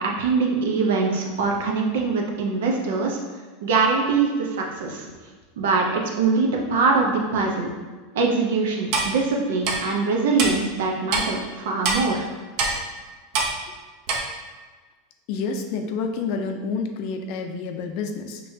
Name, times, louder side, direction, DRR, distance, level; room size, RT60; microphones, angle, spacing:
voice 1, 0.0-3.2 3.6-5.1 5.6-7.7 8.1-12.3, right 4 dB, 85° right, 0 dB, 0.8 m, -23 dB
Clock, 8.9-9.1 9.6-9.8 10.4-10.5 11.1-11.2 11.8-12.0 12.6-12.7 13.3-13.5 14.1-14.2, right 3 dB, 55° right, 0.8 m, -22 dB
voice 2, 15.3-18.4, left 4 dB, 55° left, 5 dB, 0.5 m, -28 dB
5.4 x 2.9 x 2.7 m, 1.4 s
supercardioid pair, 135°, 0 cm